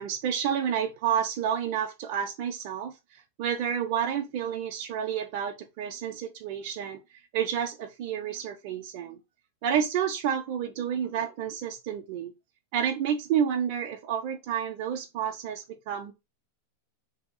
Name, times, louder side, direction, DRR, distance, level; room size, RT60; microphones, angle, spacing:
voice 1, 0.0-7.0 7.3-9.2 9.6-12.3 12.7-16.1, right 8 dB, 50° right, 0.5 m, -30 dB
2.7 x 2.3 x 3.7 m
supercardioid pair, 150°, 0 cm